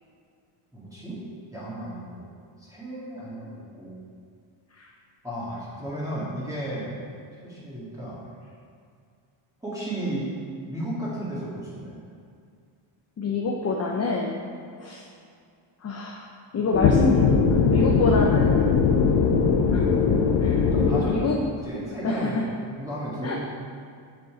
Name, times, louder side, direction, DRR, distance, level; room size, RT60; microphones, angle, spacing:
voice 1, 0.7-1.2 1.5-2.3 2.6-4.0 5.2-6.9 7.4-8.2 9.6-10.3 10.7-12.0 20.7-22.5 22.8-23.5, right 1 dB, 5° right, -9 dB, 2.0 m, -34 dB
voice 2, 13.2-14.5 14.8-15.0 15.8-16.3 16.5-17.3 17.7-19.0 19.7-20.0 20.4-20.7 21.0-21.4 22.0-22.5 23.2-23.5, left 3 dB, 30° left, -1 dB, 0.7 m, -27 dB
sound 1, 16.7-21.0, left 5 dB, 65° left, 0.9 m, -20 dB
7.1 x 6.8 x 5.0 m, 2.3 s
cardioid pair, 140°, 49 cm